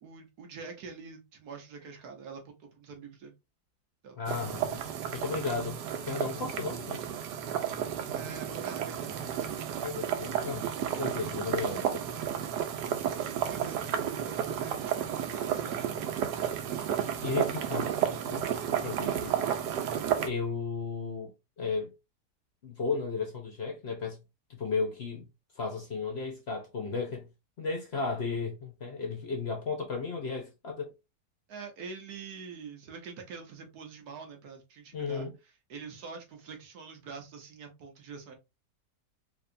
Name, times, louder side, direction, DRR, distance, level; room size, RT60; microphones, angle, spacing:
voice 1, 0.0-3.3 4.0-4.2 8.1-9.1 13.4-15.8 31.5-35.3 35.7-38.3, right 5 dB, 70° right, 1.5 m, -45 dB
voice 2, 4.2-4.8 5.1-5.8 6.1-7.0 9.8-10.6 11.0-12.0 17.2-18.0 18.2-18.6 18.8-19.3 20.2-21.3 21.6-21.9 22.6-24.2 24.5-25.2 25.6-27.3 27.6-30.9 34.9-35.3, left 4 dB, 50° left, 0.9 m, -34 dB
sound 1, 4.3-20.3, right 9 dB, 90° right, 1.3 m, -32 dB
4.7 x 2.9 x 2.6 m
omnidirectional pair, 1.8 m